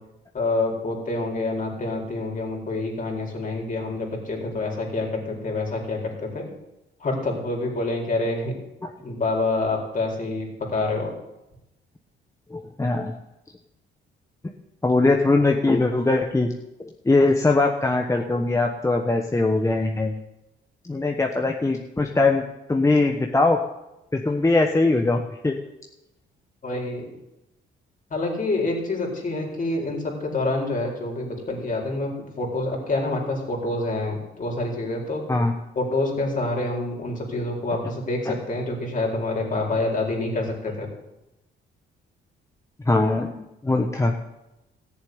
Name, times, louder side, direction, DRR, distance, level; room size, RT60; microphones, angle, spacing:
voice 1, 0.3-6.5 7.0-8.5 9.0-11.1 26.6-27.2 28.1-35.2 35.7-40.9, left 2 dB, 40° left, 0 dB, 4.4 m, -27 dB
voice 2, 12.5-13.1 14.8-16.5 16.8-20.2 20.8-23.6 24.1-25.5 35.3-35.5 38.2-38.3 42.9-43.3 43.6-44.1, left 2 dB, 15° left, 2 dB, 1.2 m, -21 dB
14.0 x 7.3 x 9.6 m, 0.95 s
cardioid pair, 90°, 20 cm